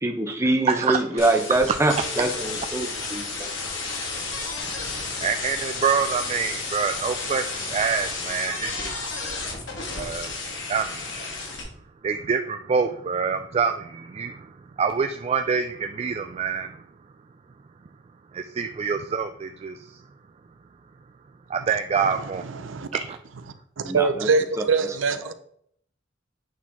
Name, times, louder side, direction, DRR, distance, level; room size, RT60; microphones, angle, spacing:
voice 1, 0.0-3.3 23.8-24.3, right 2 dB, 15° right, 0.8 m, -24 dB
voice 2, 0.7-1.0 4.8-9.1 9.9-10.3 10.7-11.4 12.0-14.5 14.8-16.8 18.3-20.0 21.5-22.4 22.9-23.2, right 6 dB, 35° right, 0.3 m, -26 dB
sound 1, 1.2-11.6, left 3 dB, 80° left, 1.7 m, -32 dB
voice 3, 22.0-22.9 23.8-25.3, right 4 dB, 85° right, 0.6 m, -24 dB
8.5 x 4.4 x 3.6 m
head